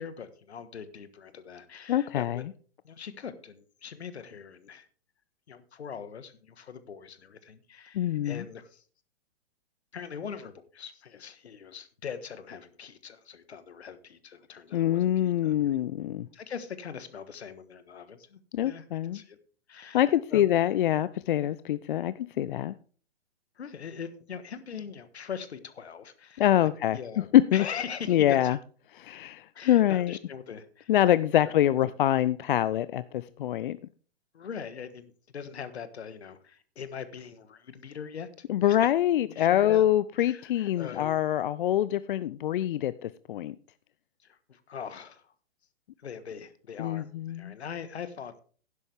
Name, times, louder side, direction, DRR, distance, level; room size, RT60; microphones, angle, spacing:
voice 1, 0.0-2.4 2.8-4.9 5.5-8.8 9.9-15.5 16.3-18.8 19.1-19.4 19.7-20.5 23.6-26.4 26.9-28.6 29.5-30.9 31.8-31.9 34.3-38.3 38.6-38.9 39.2-39.9 40.2-41.2 44.2-45.3 46.0-48.4, left 7 dB, 70° left, 1.5 m, -41 dB
voice 2, 1.9-2.4 7.9-8.4 14.7-16.3 18.5-19.2 19.9-22.7 26.4-27.0 27.3-27.6 28.1-28.6 28.9-30.1 30.9-33.8 38.5-43.6 46.8-47.5, left 12 dB, 50° left, 0.5 m, -25 dB
11.5 x 10.5 x 3.5 m
figure-of-eight pair, 120°, 34 cm